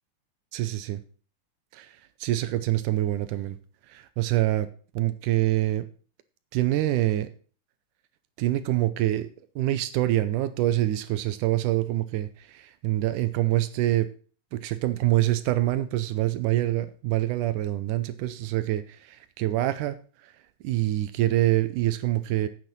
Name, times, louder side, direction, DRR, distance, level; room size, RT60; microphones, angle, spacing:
voice 1, 0.5-1.0 1.7-3.6 3.9-4.7 5.0-5.9 6.5-7.3 8.4-9.3 9.6-14.1 14.5-20.3 20.6-22.5, right 15 dB, 80° right, 13 dB, 2.2 m, -26 dB
9.2 x 7.6 x 6.0 m, 0.40 s
omnidirectional pair, 3.7 m